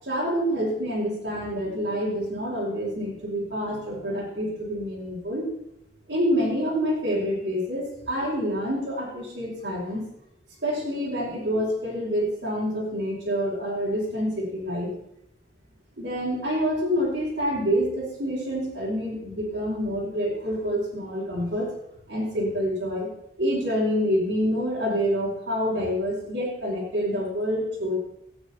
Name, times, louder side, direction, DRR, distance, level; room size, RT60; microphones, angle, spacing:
voice 1, 0.0-5.5 6.1-10.1 10.6-14.9 16.0-21.7 22.1-23.1 23.4-28.0, equal, 70° right, -8 dB, 4.6 m, -27 dB
20.0 x 8.8 x 4.2 m, 0.81 s
head